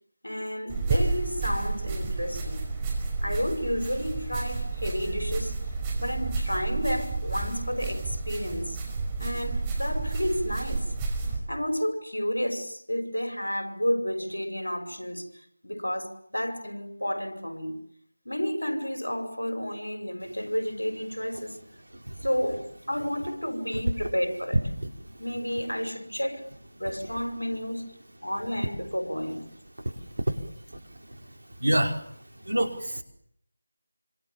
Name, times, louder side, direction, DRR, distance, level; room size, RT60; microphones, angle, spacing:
voice 1, 0.2-2.7 3.2-5.6 6.0-8.8 9.2-10.9 11.5-15.4 15.6-17.8 18.2-21.6 22.2-24.6 25.2-26.5 26.8-27.9 28.2-29.5, equal, 85° left, 5.9 m, -31 dB
sound 1, 0.7-11.4, right 3 dB, 15° right, 5.5 m, -30 dB
voice 2, 29.8-30.3 31.6-32.1 32.4-33.0, right 1 dB, 70° right, 5.2 m, -26 dB
27.5 x 26.0 x 7.4 m
figure-of-eight pair, 165°, 0 cm